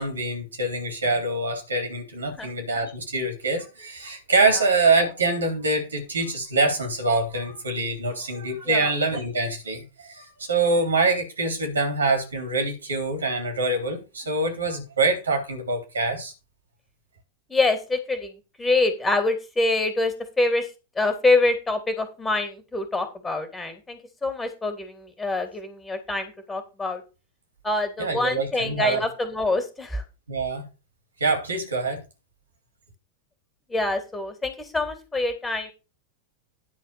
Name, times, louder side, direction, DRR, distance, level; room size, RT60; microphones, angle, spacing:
voice 1, 0.0-16.3 28.0-29.0 30.3-30.6 31.2-32.0, right 3 dB, 75° right, 3.4 m, -25 dB
voice 2, 17.5-20.7 21.0-27.0 27.6-30.0 33.7-35.7, left 2 dB, 10° left, 2.9 m, -25 dB
10.5 x 4.4 x 6.8 m
figure-of-eight pair, 90°, 0 cm